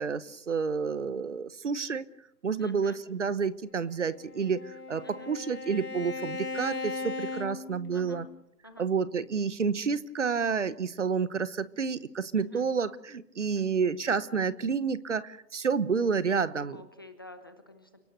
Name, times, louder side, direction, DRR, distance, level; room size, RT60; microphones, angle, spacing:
voice 1, 0.0-2.1 2.4-8.3 8.8-16.8, right 5 dB, 45° right, 17 dB, 1.1 m, -29 dB
voice 2, 2.6-3.0 5.0-5.3 7.4-7.6 7.9-8.2 8.6-8.9 12.4-12.7 13.4-13.7 16.7-17.9, left 2 dB, 15° left, 8 dB, 0.8 m, -49 dB
Bowed string instrument, 3.9-8.4, left 3 dB, 65° left, 1.8 m, -38 dB
29.5 x 18.0 x 6.7 m, 0.79 s
hypercardioid pair, 160°, 49 cm